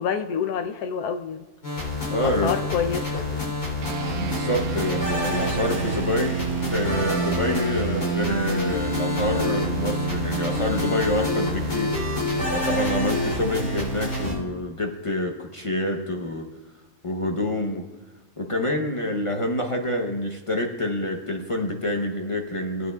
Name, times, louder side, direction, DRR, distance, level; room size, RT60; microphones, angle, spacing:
voice 1, 0.0-1.4 2.1-3.5, left 7 dB, 90° left, 7 dB, 1.2 m, -28 dB
sound 1, 1.6-14.3, left 2 dB, 70° left, 3.9 m, -28 dB
voice 2, 2.1-2.5 4.1-6.4 6.7-12.0 12.5-16.5 17.0-17.9 18.4-22.9, left 1 dB, 30° left, 2 dB, 0.6 m, -27 dB
sound 2, 3.8-13.5, right 7 dB, 75° right, 1.2 m, -31 dB
19.0 x 9.2 x 2.3 m, 1.1 s
omnidirectional pair, 1.6 m